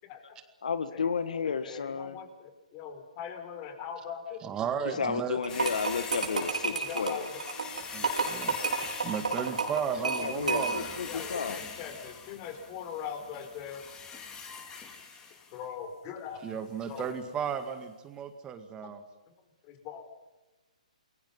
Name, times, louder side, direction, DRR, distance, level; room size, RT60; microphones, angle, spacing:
voice 1, 0.6-2.2 4.9-7.3 10.2-11.6, left 6 dB, 70° left, 12 dB, 1.7 m, -32 dB
voice 2, 1.4-2.3 2.7-4.4 6.7-7.2 7.7-7.8 11.1-13.8 15.5-16.4 16.9-17.1 18.8-18.9 19.7-20.1, left 8 dB, 30° left, 7 dB, 5.2 m, -40 dB
voice 3, 4.4-5.4 7.9-8.6 9.0-10.7 11.2-11.3 13.7-13.8 16.4-19.0, right 7 dB, 20° right, 8 dB, 2.0 m, -34 dB
sound 1, 5.4-11.0, right 4 dB, 80° right, 5.3 m, -31 dB
sound 2, 5.5-15.6 16.9-17.1 17.5-17.6, left 5 dB, 15° left, 3.9 m, -43 dB
29.0 x 22.5 x 5.6 m, 1.1 s
hypercardioid pair, 135°, 4 cm